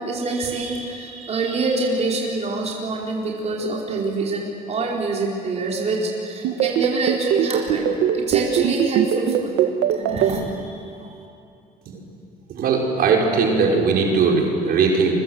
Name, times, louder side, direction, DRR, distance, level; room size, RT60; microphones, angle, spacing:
voice 1, 0.0-7.9 8.1-11.2, right 3 dB, 40° right, -3 dB, 4.6 m, -26 dB
sound 1, 6.4-10.3, right 10 dB, 80° right, 1.7 m, -19 dB
voice 2, 12.5-15.1, right 4 dB, 65° right, -1 dB, 5.4 m, -19 dB
29.5 x 24.0 x 8.0 m, 2.5 s
cardioid pair, 110°, 17 cm